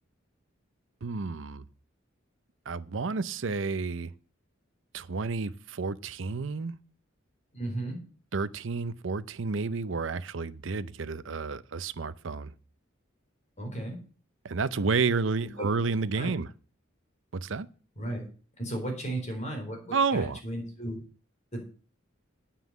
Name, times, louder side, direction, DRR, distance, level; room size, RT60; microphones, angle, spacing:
voice 1, 1.0-1.6 2.7-4.1 4.9-6.7 8.3-12.5 14.4-16.5 17.3-17.7 19.9-20.4, right 4 dB, 70° right, 0.6 m, -30 dB
voice 2, 7.5-8.0 13.6-14.0 15.4-15.5 16.1-16.3 18.0-18.3 18.6-21.0 21.5-21.6, right 1 dB, 35° left, 4.0 m, -35 dB
9.4 x 5.8 x 8.1 m
head